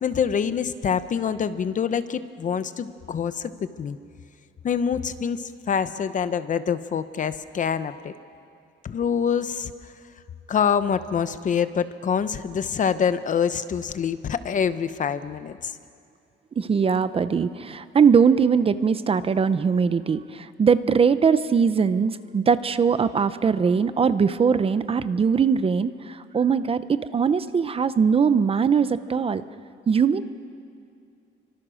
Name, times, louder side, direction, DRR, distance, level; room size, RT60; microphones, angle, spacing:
voice 1, 0.0-3.5 3.8-4.0 4.6-8.1 8.8-9.7 10.5-15.8, left 7 dB, 40° left, 12 dB, 0.9 m, -25 dB
voice 2, 16.6-29.4 29.9-30.2, right 6 dB, 30° right, 13 dB, 0.6 m, -21 dB
30.0 x 24.5 x 6.4 m, 2.4 s
cardioid pair, 170°, 20 cm